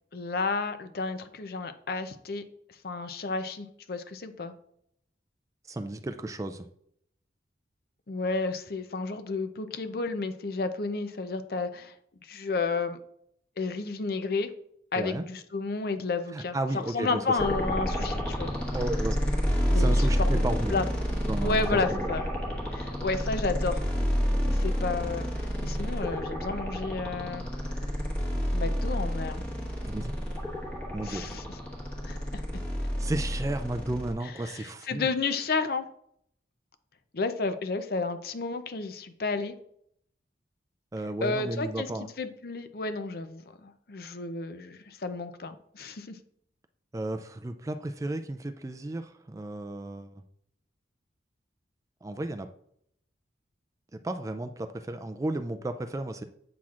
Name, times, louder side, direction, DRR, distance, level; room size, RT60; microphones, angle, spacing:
voice 1, 0.1-2.4 2.8-4.5 8.1-11.9 12.2-13.0 13.6-14.5 14.9-18.5 19.6-20.4 20.7-20.8 21.4-22.2 22.7-23.8 24.5-25.3 25.6-27.5 28.5-29.4 31.0-31.4 32.0-32.2 34.5-35.8 37.1-39.5 41.2-41.9 42.2-46.2, left 3 dB, 55° left, 9 dB, 0.5 m, -31 dB
voice 2, 5.7-6.7 14.9-15.2 16.3-17.4 18.7-19.2 19.7-20.8 21.3-22.1 29.8-30.1 30.9-31.4 33.0-35.1 40.9-42.1 46.9-50.2 52.0-52.5 53.9-56.2, right 1 dB, 20° right, 8 dB, 0.3 m, -33 dB
sound 1, 17.4-34.1, equal, 5° left, 1.2 m, -29 dB
8.5 x 5.9 x 2.4 m, 0.69 s
head